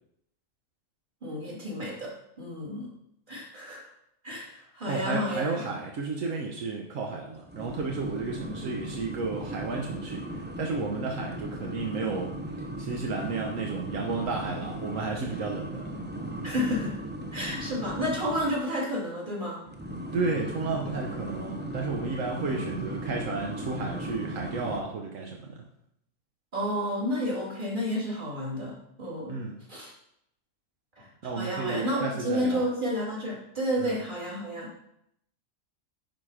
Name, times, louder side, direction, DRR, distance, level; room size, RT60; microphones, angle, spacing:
voice 1, 1.2-2.9 3.3-3.9 4.2-5.6 16.4-17.0 17.3-19.6 26.5-29.4 29.7-29.9 31.0-34.7, equal, 40° right, -6 dB, 3.0 m, -31 dB
voice 2, 4.9-10.2 10.6-12.3 12.8-15.8 20.1-25.6 29.3-29.6 31.2-32.6 33.8-34.0, right 3 dB, 80° right, 0 dB, 1.4 m, -32 dB
sound 1, 7.5-18.6 19.7-24.8, right 1 dB, 10° right, 0.5 m, -37 dB
10.5 x 4.3 x 5.0 m, 0.76 s
omnidirectional pair, 1.3 m